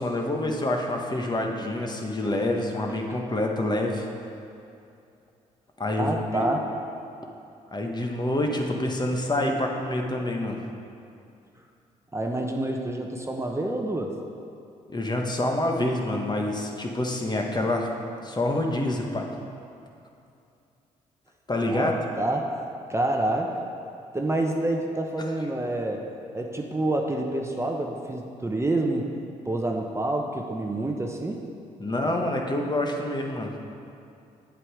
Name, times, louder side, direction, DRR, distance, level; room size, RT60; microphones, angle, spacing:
voice 1, 0.0-4.0 5.8-6.5 7.7-10.6 14.9-17.9 18.2-19.3 21.5-21.9 25.2-25.3 31.8-33.5, left 1 dB, 25° left, 1 dB, 1.3 m, -27 dB
voice 2, 6.0-6.7 12.1-14.2 21.7-22.5 22.9-23.6 24.1-26.0 26.3-29.1 29.4-31.4, right 1 dB, 15° right, 1 dB, 1.0 m, -27 dB
8.4 x 7.5 x 4.9 m, 2.5 s
supercardioid pair, 50°, 16 cm